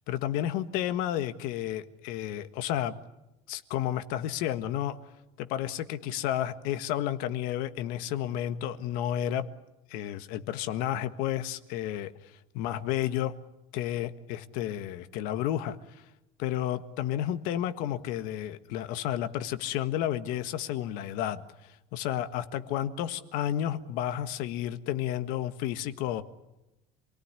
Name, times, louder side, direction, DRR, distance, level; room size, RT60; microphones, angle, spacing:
voice 1, 0.1-2.9 3.5-5.0 5.4-9.5 9.9-12.1 12.5-13.3 13.7-16.0 16.4-26.2, left 11 dB, 60° left, 10 dB, 1.6 m, -31 dB
27.5 x 18.5 x 9.9 m, 0.94 s
cardioid pair, 180°, 16 cm